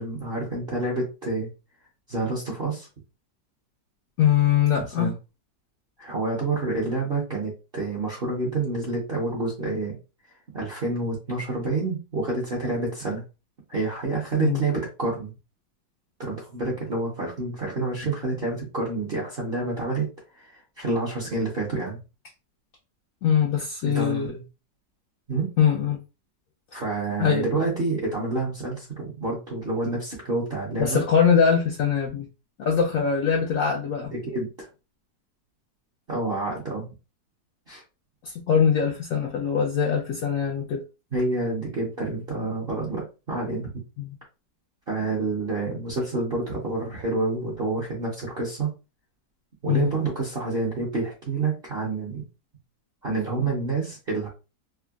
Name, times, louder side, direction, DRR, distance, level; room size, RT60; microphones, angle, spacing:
voice 1, 0.0-1.5 2.1-2.9 5.0-5.1 6.0-10.0 10.5-13.2 13.7-15.3 16.2-20.1 20.3-22.0 23.8-24.4 25.3-25.5 26.7-31.0 34.0-34.7 36.1-36.8 37.7-37.8 41.1-43.7 44.9-48.7 49.6-52.2 53.0-54.3, right 3 dB, 45° right, -4 dB, 0.8 m, -28 dB
voice 2, 4.2-5.1 14.4-14.6 23.2-24.3 25.6-26.0 27.2-27.5 30.8-32.3 32.6-34.1 38.2-40.8 44.0-44.1 49.7-49.9, left 7 dB, 75° left, 0 dB, 0.8 m, -22 dB
3.5 x 2.1 x 2.3 m, 0.30 s
omnidirectional pair, 1.9 m